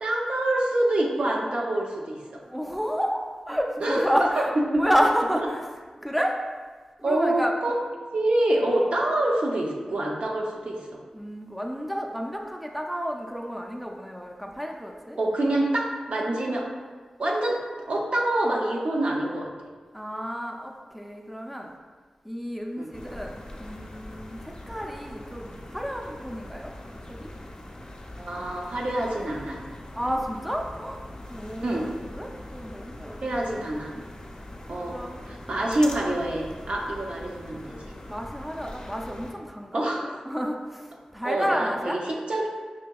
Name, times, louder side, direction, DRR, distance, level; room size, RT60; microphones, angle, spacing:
voice 1, 0.0-2.4 3.8-4.8 5.4-5.5 7.0-7.8 8.1-11.0 15.2-16.7 17.2-17.6 17.9-19.5 22.8-22.9 28.1-29.6 31.6-31.9 33.2-33.9 34.7-37.7 39.7-40.2 41.2-42.5, right 1 dB, 65° right, -1 dB, 0.6 m, -26 dB
voice 2, 2.4-5.6 6.0-6.4 7.0-7.5 11.1-15.2 19.9-21.7 22.2-26.7 27.1-27.3 30.0-31.0 31.3-33.2 33.5-34.0 34.9-35.2 38.1-39.8 40.3-42.0, equal, ahead, 1 dB, 0.4 m, -30 dB
sound 1, 22.9-39.3, left 1 dB, 40° left, 0.6 m, -42 dB
5.6 x 2.7 x 2.3 m, 1.4 s
cardioid pair, 55°, 2 cm